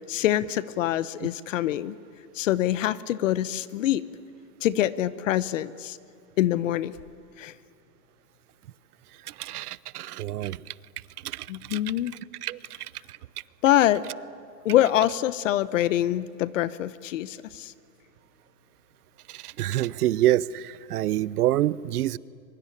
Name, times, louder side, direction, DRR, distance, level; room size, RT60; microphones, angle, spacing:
voice 1, 0.1-1.9 2.3-4.0 4.6-6.0 6.4-6.9 7.4-7.5 11.5-12.1 13.6-14.0 14.6-17.7, left 13 dB, 55° left, 16 dB, 0.9 m, -25 dB
voice 2, 9.4-10.6 11.2-11.8 12.4-12.6 19.4-22.2, right 14 dB, 70° right, 20 dB, 0.8 m, -26 dB
23.5 x 23.0 x 9.9 m, 2.2 s
supercardioid pair, 160°, 47 cm